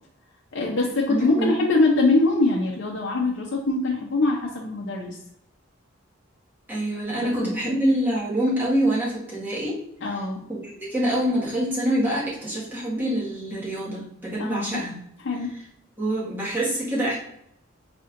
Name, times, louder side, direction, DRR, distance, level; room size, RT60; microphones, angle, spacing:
voice 1, 0.5-5.2 7.2-7.8 10.0-10.4 14.4-14.8 15.2-15.6, left 2 dB, 70° left, -2 dB, 0.6 m, -23 dB
voice 2, 1.1-1.5 6.7-9.8 10.5-15.0 16.0-17.2, right 1 dB, 10° right, -7 dB, 1.5 m, -25 dB
4.2 x 4.2 x 2.5 m, 0.74 s
head